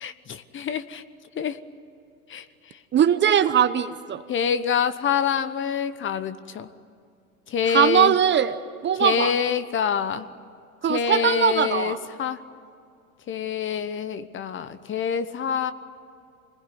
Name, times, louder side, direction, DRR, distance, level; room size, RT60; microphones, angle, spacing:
voice 1, 0.0-1.0 1.4-1.6 2.3-2.4 4.3-6.7 7.5-8.1 9.0-10.3 10.9-12.4 13.3-15.7, left 7 dB, 25° left, 13 dB, 1.1 m, -26 dB
voice 2, 2.9-4.2 7.7-8.6 8.8-9.3 10.8-12.0, right 9 dB, 25° right, 12 dB, 0.9 m, -20 dB
26.0 x 20.0 x 9.5 m, 2.5 s
hypercardioid pair, 95°, 44 cm